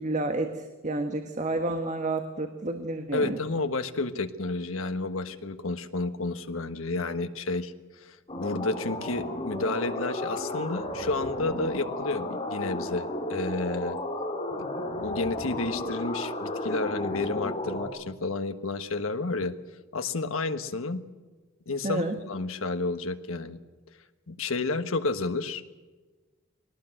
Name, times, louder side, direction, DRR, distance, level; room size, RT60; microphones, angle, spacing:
voice 1, 0.0-3.4 21.8-22.1, right 2 dB, 35° right, 6 dB, 1.5 m, -30 dB
voice 2, 3.1-14.0 14.5-19.5 19.9-21.0 21.7-23.6 24.3-25.6, left 3 dB, 75° left, 9 dB, 1.5 m, -31 dB
sound 1, 8.3-17.9, left 1 dB, 30° left, 3.4 m, -33 dB
22.0 x 18.5 x 7.9 m, 1.3 s
head